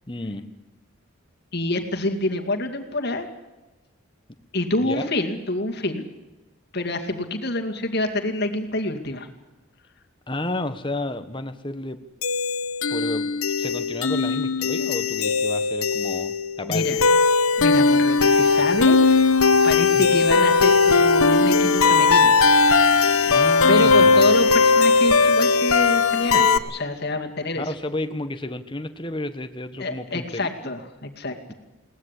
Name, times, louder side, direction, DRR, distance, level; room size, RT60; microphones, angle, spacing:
voice 1, 0.1-0.4 4.8-5.1 10.3-12.0 12.9-13.3 13.6-16.9 19.9-20.2 23.3-24.3 27.6-30.5, left 1 dB, 20° left, 9 dB, 1.3 m, -31 dB
voice 2, 1.5-3.3 4.5-6.1 6.7-9.3 16.7-17.0 17.6-19.0 19.6-22.4 23.7-27.7 29.8-31.4, left 2 dB, 50° left, 4 dB, 2.3 m, -27 dB
sound 1, 12.2-26.6, left 4 dB, 85° left, 1.3 m, -18 dB
21.5 x 18.5 x 8.4 m, 1.1 s
head